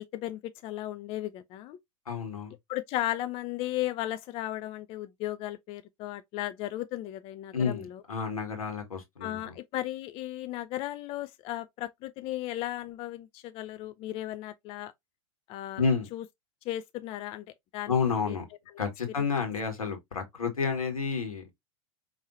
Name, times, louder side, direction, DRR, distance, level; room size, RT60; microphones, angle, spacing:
voice 1, 0.0-1.8 2.7-8.0 9.2-14.9 15.5-15.8 16.1-16.2 16.6-17.5 17.7-17.9 18.3-18.4 19.2-19.3, left 14 dB, 30° left, 0.4 m, -35 dB
voice 2, 2.0-2.5 7.5-9.6 15.8-16.1 17.9-18.4 18.8-21.5, left 5 dB, 75° left, 1.6 m, -30 dB
5.4 x 3.1 x 2.6 m
figure-of-eight pair, 90°, 18 cm